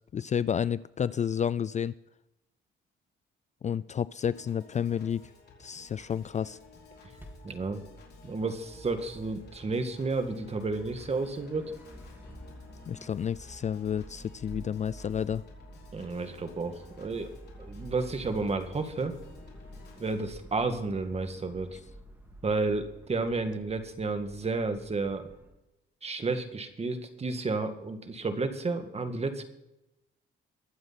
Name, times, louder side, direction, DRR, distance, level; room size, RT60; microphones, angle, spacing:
voice 1, 0.1-1.9 3.6-5.2 5.6-6.6 12.9-15.4, left 8 dB, 35° left, 18 dB, 0.4 m, -30 dB
Piano / Organ, 4.2-20.2, left 4 dB, 55° left, 4.3 m, -55 dB
sound 1, 5.9-25.5, equal, 10° right, 4.0 m, -50 dB
voice 2, 7.4-7.8 8.2-11.8 15.9-17.3 17.6-19.1 20.0-21.8 22.4-25.3 26.0-29.4, right 3 dB, 30° right, 8 dB, 2.0 m, -31 dB
23.0 x 7.9 x 4.2 m, 0.92 s
cardioid pair, 90°, 20 cm